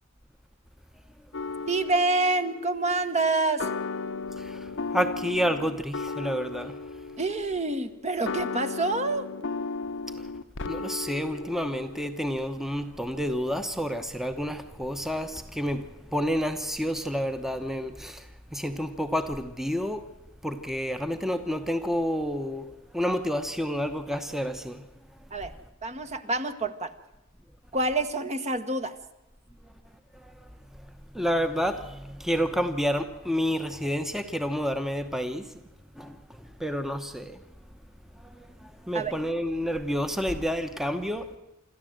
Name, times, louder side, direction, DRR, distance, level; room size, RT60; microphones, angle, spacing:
sound 1, 1.3-12.0, left 4 dB, 60° left, 0.8 m, -35 dB
voice 1, 1.7-3.7 7.2-9.3 25.3-25.5 25.8-26.9 27.7-28.9 38.9-39.1, right 2 dB, 35° right, 1.2 m, -27 dB
voice 2, 4.4-6.8 10.7-20.1 20.4-24.8 30.2-30.5 30.8-30.9 31.1-35.5 36.0-37.4 38.2-41.4, equal, ahead, 0.9 m, -30 dB
26.5 x 13.5 x 7.7 m
head